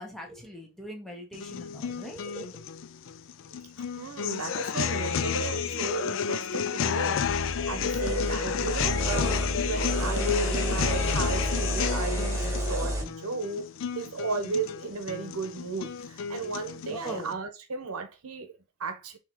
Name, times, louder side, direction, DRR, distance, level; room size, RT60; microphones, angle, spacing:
voice 1, 0.0-2.5 16.9-17.4, equal, ahead, 0.9 m, -41 dB
sound 1, 1.3-17.3, left 7 dB, 60° left, 0.4 m, -31 dB
voice 2, 3.9-7.3 7.7-13.7 13.9-19.2, right 3 dB, 85° right, 0.8 m, -34 dB
sound 2, 7.2-13.0, right 1 dB, 15° right, 1.3 m, -30 dB
3.7 x 2.9 x 4.5 m
head